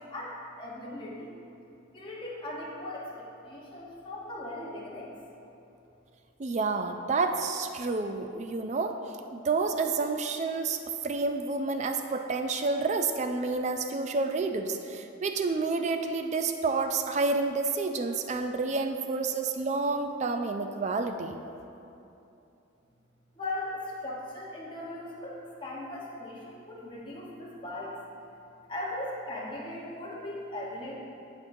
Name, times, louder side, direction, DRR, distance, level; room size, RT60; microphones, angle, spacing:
voice 1, 0.0-1.3 1.9-5.2 23.4-27.9 28.2-28.3 28.7-30.9, left 1 dB, 25° left, -5 dB, 1.0 m, -38 dB
voice 2, 6.4-9.0 9.3-21.4, right 3 dB, 35° right, 6 dB, 0.3 m, -29 dB
10.5 x 5.3 x 2.7 m, 2.8 s
head